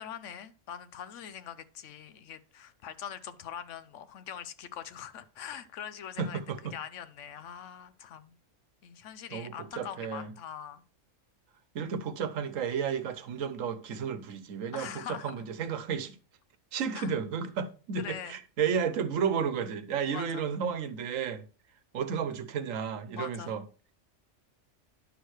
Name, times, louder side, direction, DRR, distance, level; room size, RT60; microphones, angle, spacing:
voice 1, 0.0-6.4 6.7-8.3 8.8-10.8 14.7-15.3 16.9-17.1 18.0-18.4 20.1-20.5 23.2-23.6, left 9 dB, 75° left, 1.0 m, -43 dB
voice 2, 6.2-6.8 9.3-10.3 11.7-16.2 16.7-21.4 21.9-23.6, right 7 dB, 85° right, 1.2 m, -32 dB
10.5 x 6.5 x 3.1 m
omnidirectional pair, 1.3 m